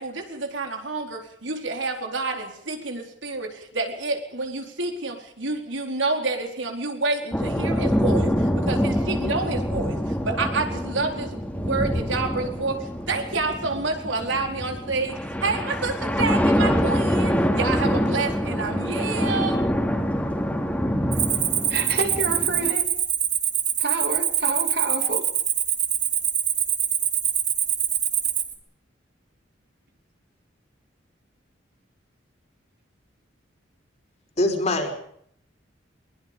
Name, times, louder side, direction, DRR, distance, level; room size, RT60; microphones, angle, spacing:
voice 1, 0.0-19.6, right 3 dB, 80° right, 3 dB, 4.3 m, -28 dB
sound 1, 7.3-22.7, equal, 10° left, 3.2 m, -25 dB
Cricket, 21.1-28.5, right 9 dB, 40° right, 2.9 m, -24 dB
voice 2, 21.7-22.9 23.8-25.2, right 3 dB, 55° right, 5 dB, 2.9 m, -28 dB
voice 3, 34.4-35.0, left 1 dB, 40° left, 3 dB, 5.0 m, -23 dB
22.5 x 22.0 x 5.3 m, 0.67 s
head